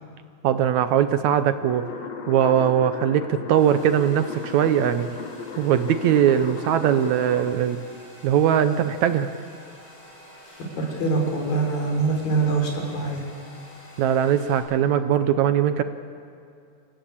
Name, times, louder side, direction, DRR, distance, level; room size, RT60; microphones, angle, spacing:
voice 1, 0.4-1.8 2.3-5.1 5.6-7.8 8.2-9.3 14.0-15.8, right 9 dB, 75° right, 10 dB, 1.8 m, -20 dB
sound 1, 1.6-7.5, left 5 dB, 55° left, 2.5 m, -36 dB
Domestic sounds home sounds, 3.6-14.6, left 1 dB, 40° left, 8.9 m, -48 dB
voice 2, 10.8-13.2, right 3 dB, 85° left, 1 dB, 5.6 m, -24 dB
28.5 x 15.5 x 8.6 m, 2.4 s
omnidirectional pair, 3.9 m